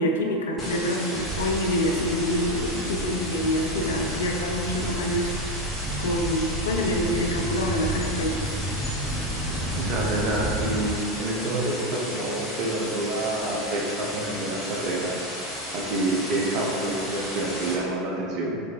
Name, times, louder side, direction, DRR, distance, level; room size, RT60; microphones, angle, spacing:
voice 1, 0.0-5.3 6.0-8.5, left 1 dB, 70° left, 1 dB, 0.4 m, -26 dB
sound 1, 0.6-17.8, equal, 15° left, 1.0 m, -34 dB
sound 2, 1.1-10.8, right 1 dB, 20° right, 0.8 m, -32 dB
voice 2, 9.7-15.2 15.7-18.6, right 2 dB, 50° right, -2 dB, 0.5 m, -28 dB
3.8 x 3.1 x 2.3 m, 2.6 s
figure-of-eight pair, 80°, 0 cm